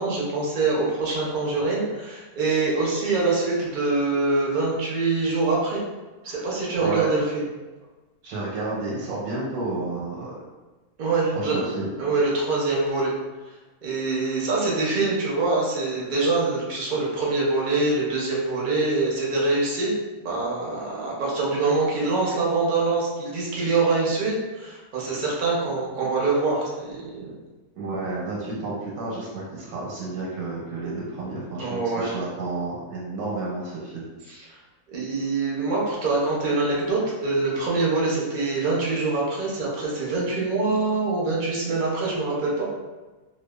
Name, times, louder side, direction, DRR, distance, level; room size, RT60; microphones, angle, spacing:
voice 1, 0.0-5.8 6.2-7.4 11.0-11.7 12.0-13.1 13.8-27.3 31.6-32.1 34.3-34.6 34.9-42.6, right 3 dB, 60° right, -5 dB, 0.5 m, -24 dB
voice 2, 6.2-7.1 8.2-10.4 11.3-11.9 27.2-27.3 27.8-34.0, right 3 dB, 90° right, -5 dB, 1.1 m, -31 dB
2.6 x 2.2 x 2.2 m, 1.2 s
omnidirectional pair, 1.5 m